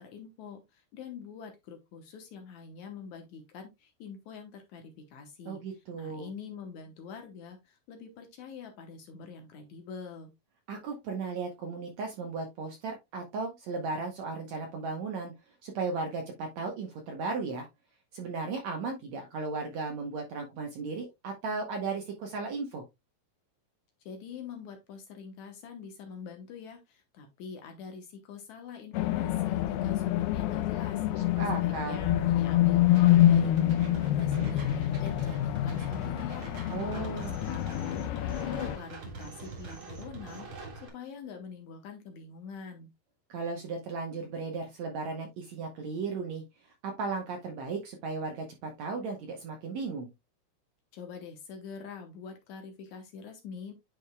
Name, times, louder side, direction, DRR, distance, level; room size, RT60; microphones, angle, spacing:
voice 1, 0.0-10.3 24.0-38.0 38.4-42.9 50.9-53.7, left 6 dB, 70° left, 5 dB, 1.8 m, -45 dB
voice 2, 5.4-6.3 10.7-15.3 15.6-17.7 18.1-22.8 31.3-32.0 36.7-37.4 43.3-46.4 46.8-50.1, right 4 dB, 80° right, 3 dB, 1.5 m, -35 dB
sound 1, 28.9-38.8, left 13 dB, 90° left, 2.6 m, -26 dB
sound 2, 32.9-40.9, right 4 dB, 45° right, 2.0 m, -44 dB
10.0 x 4.8 x 2.2 m, 0.22 s
omnidirectional pair, 4.4 m